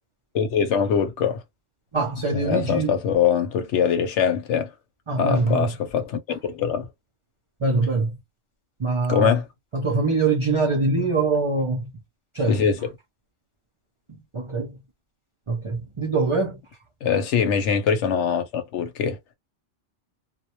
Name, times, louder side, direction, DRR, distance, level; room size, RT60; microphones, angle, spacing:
voice 1, 0.3-1.4 2.3-4.7 5.2-6.9 9.1-9.5 12.5-12.9 17.0-19.3, left 7 dB, 75° left, 0.9 m, -23 dB
voice 2, 1.9-2.9 5.1-5.7 7.6-8.2 8.8-9.4 9.7-11.8 12.3-12.6 14.3-14.8 15.5-16.6, right 3 dB, 45° right, 0.4 m, -23 dB
2.2 x 2.1 x 2.8 m
omnidirectional pair, 1.3 m